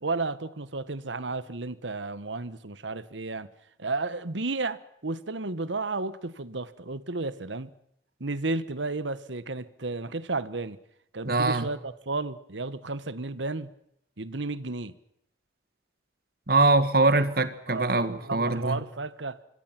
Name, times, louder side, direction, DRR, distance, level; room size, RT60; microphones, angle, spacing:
voice 1, 0.0-3.5 3.8-7.7 8.2-10.8 11.1-13.7 14.2-14.9 17.7-19.4, right 3 dB, 85° right, 1.3 m, -33 dB
voice 2, 11.3-11.7 16.5-18.8, right 2 dB, 55° right, 1.9 m, -23 dB
26.0 x 24.5 x 6.0 m
head